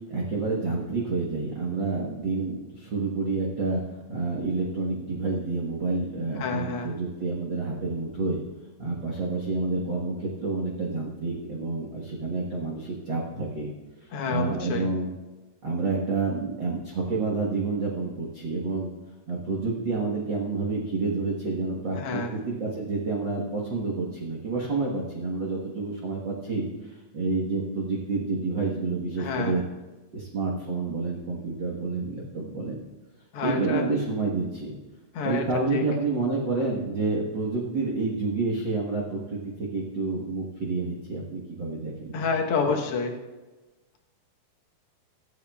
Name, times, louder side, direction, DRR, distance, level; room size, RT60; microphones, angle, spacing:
voice 1, 0.1-3.8 4.1-8.4 8.8-13.7 14.3-15.1 15.6-18.9 19.3-29.7 30.1-32.7 33.4-34.7 35.2-42.3, right 3 dB, 50° right, -3 dB, 1.5 m, -29 dB
voice 2, 6.4-6.9 14.1-14.9 21.9-22.3 29.2-29.6 33.3-33.9 35.1-35.4 35.7-35.8 42.1-43.2, left 4 dB, 60° left, 2 dB, 1.6 m, -28 dB
24.0 x 8.4 x 2.4 m, 1.2 s
omnidirectional pair, 3.8 m